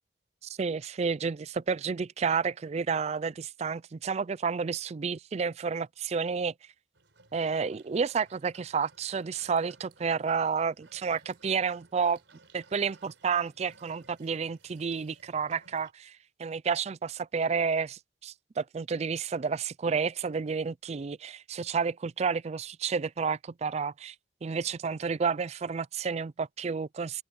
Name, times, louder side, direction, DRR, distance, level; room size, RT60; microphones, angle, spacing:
voice 1, 0.4-6.5 7.3-12.2 12.5-24.1 24.4-27.2, right 5 dB, 35° right, 0.4 m, -30 dB
sound 1, 6.9-15.9, right 3 dB, 80° right, 4.3 m, -60 dB
open air
head